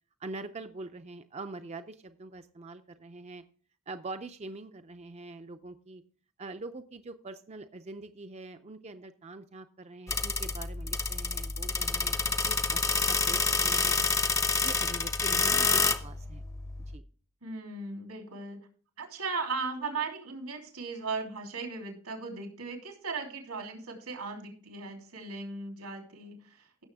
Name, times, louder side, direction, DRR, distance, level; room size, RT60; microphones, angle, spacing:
voice 1, 0.2-3.4 3.9-6.0 6.4-14.0 14.5-16.4 16.9-17.0, right 2 dB, 30° right, 8 dB, 0.4 m, -44 dB
sound 1, 10.1-17.0, left 4 dB, 15° left, 0.6 m, -28 dB
voice 2, 17.4-18.6 19.0-26.8, right 4 dB, 85° right, 3 dB, 3.3 m, -37 dB
16.0 x 6.9 x 3.5 m, 0.43 s
head